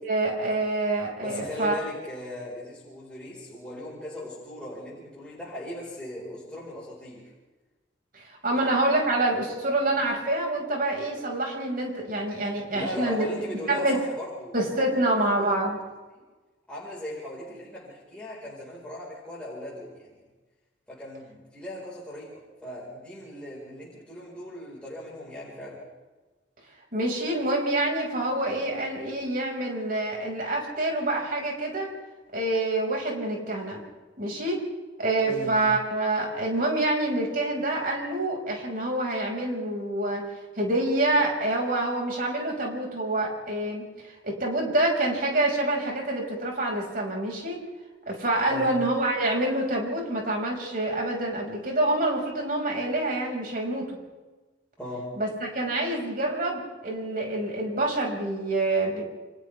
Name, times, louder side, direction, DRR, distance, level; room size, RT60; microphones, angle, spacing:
voice 1, 0.0-1.8 8.1-13.3 13.7-14.0 14.5-15.8 26.9-31.9 32.3-33.8 34.2-34.6 35.0-40.2 40.6-43.9 44.2-47.6 48.1-54.0 55.2-59.0, right 2 dB, 50° right, 0 dB, 5.7 m, -27 dB
voice 2, 1.2-7.3 8.5-8.7 12.7-14.8 15.4-15.5 16.1-16.2 16.7-20.1 20.9-25.8 35.2-35.6 48.5-48.7 54.8-55.2, left 1 dB, 5° left, -7 dB, 4.9 m, -38 dB
29.5 x 25.5 x 3.5 m, 1.2 s
head